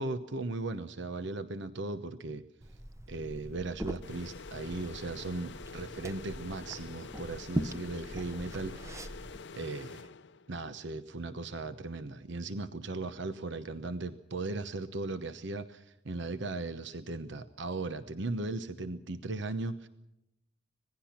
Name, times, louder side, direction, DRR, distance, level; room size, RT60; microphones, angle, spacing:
voice 1, 0.0-2.4 3.1-9.2 9.5-10.1 10.5-19.9, right 2 dB, 65° right, 11 dB, 1.0 m, -37 dB
Liquid, 2.6-9.4, right 1 dB, 15° right, 0.9 m, -42 dB
sound 1, 4.0-10.7, left 4 dB, 60° left, 0.7 m, -47 dB
26.0 x 19.0 x 5.9 m, 0.85 s
head